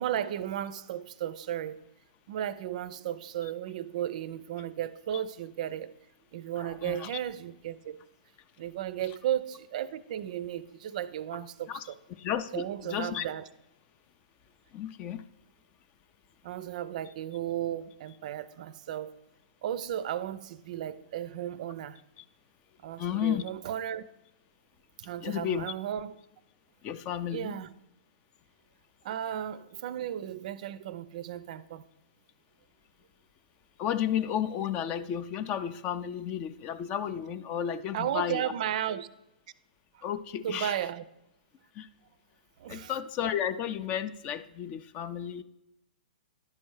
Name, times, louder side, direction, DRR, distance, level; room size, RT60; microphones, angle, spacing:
voice 1, 0.0-1.8 2.3-5.9 6.3-8.0 8.6-12.0 12.5-13.5 16.4-19.1 19.6-22.0 22.8-24.0 25.0-26.2 27.3-27.7 29.0-31.9 37.9-39.1 39.9-40.0 40.4-41.0 42.6-42.9, right 11 dB, 50° right, 0.4 m, -34 dB
voice 2, 6.6-7.1 11.7-11.9 12.2-13.3 14.7-15.2 22.2-22.3 23.0-23.4 25.2-25.7 26.8-27.6 33.8-38.5 40.0-40.8 41.8-41.9 42.7-45.4, left 9 dB, 30° left, 0.4 m, -32 dB
10.5 x 4.3 x 4.7 m
hypercardioid pair, 145°, 5 cm